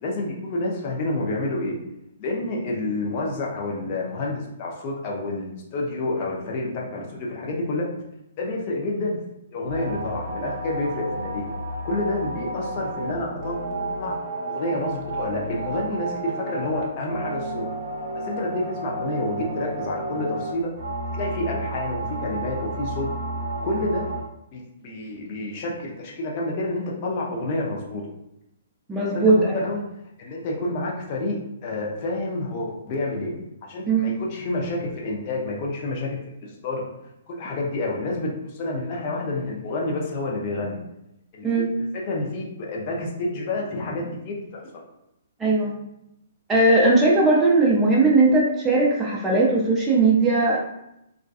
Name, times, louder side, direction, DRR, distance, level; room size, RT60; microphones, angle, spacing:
voice 1, 0.0-1.7 2.2-7.9 8.4-9.2 9.5-11.5 11.8-14.2 14.5-17.7 18.1-20.7 21.1-23.2 23.6-24.1 24.5-28.0 29.1-29.8 30.2-36.9 37.3-40.8 41.3-41.7 41.9-44.6, left 2 dB, 40° left, -2 dB, 0.5 m, -29 dB
sound 1, 9.7-24.2, right 2 dB, 60° right, 0.6 m, -31 dB
voice 2, 28.9-29.7 33.9-34.1 41.4-41.7 45.4-45.7 46.5-50.7, right 2 dB, 10° right, -5 dB, 0.5 m, -19 dB
2.4 x 2.2 x 2.4 m, 0.83 s
figure-of-eight pair, 120°, 0 cm